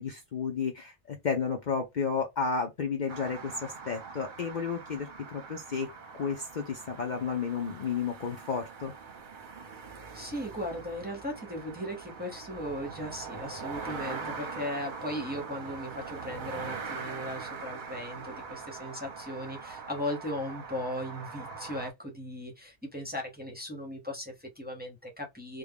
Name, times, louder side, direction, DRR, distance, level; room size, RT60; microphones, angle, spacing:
voice 1, 0.0-5.9 6.2-8.9, left 5 dB, 50° left, 0.7 m, -32 dB
sound 1, 3.1-21.9, right 5 dB, 50° right, 0.8 m, -42 dB
voice 2, 10.1-25.6, left 1 dB, 10° right, 0.8 m, -37 dB
3.5 x 2.2 x 3.5 m
omnidirectional pair, 1.2 m